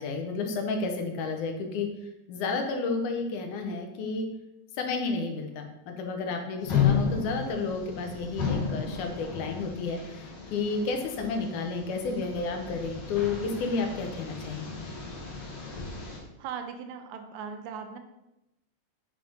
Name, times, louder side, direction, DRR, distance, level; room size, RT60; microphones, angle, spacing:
voice 1, 0.0-1.9 2.3-4.3 4.8-14.8, left 4 dB, 85° left, 4 dB, 2.3 m, -31 dB
sound 1, 6.6-16.2, left 7 dB, 55° left, 1.3 m, -33 dB
voice 2, 16.4-18.0, right 7 dB, 80° right, 6 dB, 1.9 m, -38 dB
5.8 x 3.5 x 5.1 m, 0.92 s
omnidirectional pair, 3.4 m